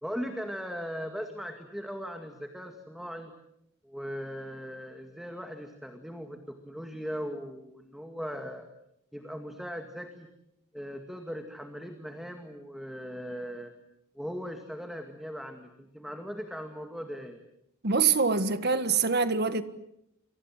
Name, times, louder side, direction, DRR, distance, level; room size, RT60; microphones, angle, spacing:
voice 1, 0.0-3.3 3.8-8.7 9.1-10.3 10.7-13.7 14.1-17.4, equal, ahead, 2.1 m, -39 dB
voice 2, 17.8-19.6, right 5 dB, 50° right, 1.7 m, -25 dB
29.5 x 24.5 x 7.6 m
head